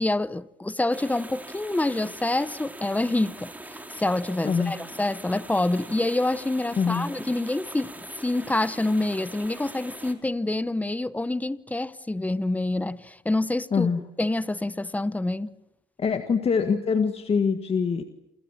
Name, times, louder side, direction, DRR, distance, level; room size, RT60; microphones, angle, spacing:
voice 1, 0.0-3.5 4.0-13.9 14.2-15.5, left 2 dB, 10° left, 0.9 m, -27 dB
sound 1, 0.9-10.1, right 1 dB, 10° right, 3.4 m, -43 dB
voice 2, 6.8-7.1 13.7-14.0 16.0-18.0, left 5 dB, 35° left, 1.8 m, -24 dB
28.0 x 26.5 x 7.4 m
cardioid pair, 110°, 17 cm